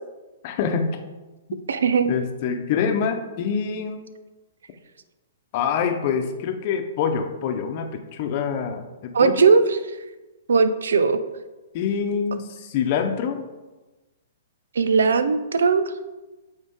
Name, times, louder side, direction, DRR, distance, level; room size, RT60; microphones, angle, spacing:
voice 1, 0.4-0.9 1.5-1.6 2.1-4.1 5.5-9.5 11.7-13.4, left 6 dB, 45° left, 6 dB, 0.8 m, -26 dB
voice 2, 1.7-2.1 9.1-9.6 10.5-11.2 14.8-15.9, right 5 dB, 75° right, 12 dB, 0.5 m, -18 dB
8.5 x 3.6 x 3.7 m, 1.1 s
hypercardioid pair, 125°, 0 cm